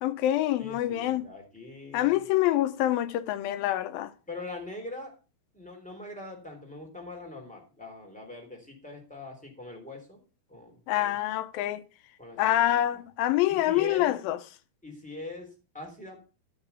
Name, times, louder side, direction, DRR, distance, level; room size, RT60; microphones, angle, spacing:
voice 1, 0.0-1.3 1.9-4.1 10.9-11.8 12.4-14.4, left 14 dB, 80° left, 2.3 m, -26 dB
voice 2, 0.6-2.2 4.3-5.1 5.5-10.2 10.5-11.1 12.2-13.0 13.5-14.1 14.8-16.2, left 2 dB, ahead, 2.8 m, -42 dB
11.0 x 7.0 x 5.6 m
omnidirectional pair, 4.4 m